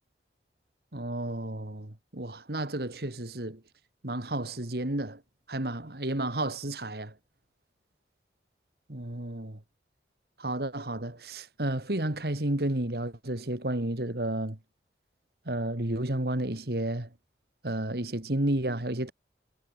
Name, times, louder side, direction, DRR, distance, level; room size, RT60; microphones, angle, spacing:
voice 1, 0.9-3.6 4.0-5.2 5.5-7.1 8.9-9.6 10.4-14.6 15.5-17.1 17.6-19.1, right 1 dB, 65° right, 2.2 m, -31 dB
head